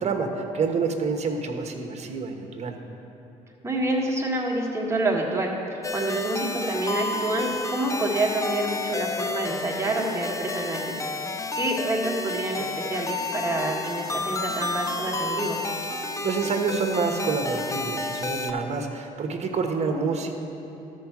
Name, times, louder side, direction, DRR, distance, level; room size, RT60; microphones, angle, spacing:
voice 1, 0.0-2.8 16.0-20.4, right 4 dB, 45° right, 4 dB, 1.1 m, -27 dB
voice 2, 3.6-11.0 11.5-15.6, right 2 dB, 20° right, -1 dB, 1.7 m, -27 dB
sound 1, 5.8-18.5, left 3 dB, 20° left, 0.6 m, -31 dB
13.0 x 4.6 x 6.0 m, 2.9 s
supercardioid pair, 75°, 15 cm